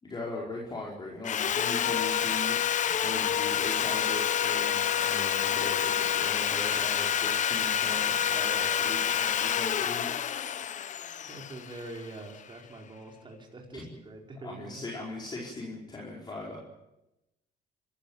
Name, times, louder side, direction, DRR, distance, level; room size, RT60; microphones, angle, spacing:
voice 1, 0.0-2.6 2.9-10.1 13.7-13.8 14.4-16.6, left 2 dB, 25° left, -3 dB, 5.0 m, -39 dB
Sawing, 1.2-12.3, left 9 dB, 45° left, 1.1 m, -28 dB
voice 2, 11.3-14.8, right 2 dB, 30° right, 1 dB, 5.0 m, -44 dB
25.0 x 14.5 x 9.0 m, 0.93 s
cardioid pair, 110°, 17 cm